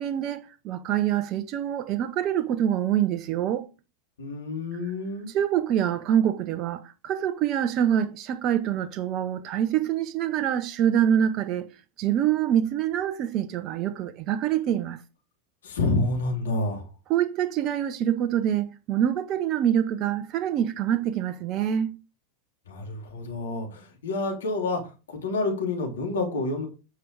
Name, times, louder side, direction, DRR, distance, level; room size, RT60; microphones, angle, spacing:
voice 1, 0.0-3.7 4.8-4.9 5.3-11.7 12.0-15.0 17.1-22.0, right 10 dB, 45° right, 1.0 m, -25 dB
voice 2, 4.2-5.3 15.6-16.8 22.7-24.8 25.1-26.7, left 2 dB, 80° left, 3.6 m, -28 dB
9.6 x 6.4 x 4.8 m
hypercardioid pair, 90°, 0 cm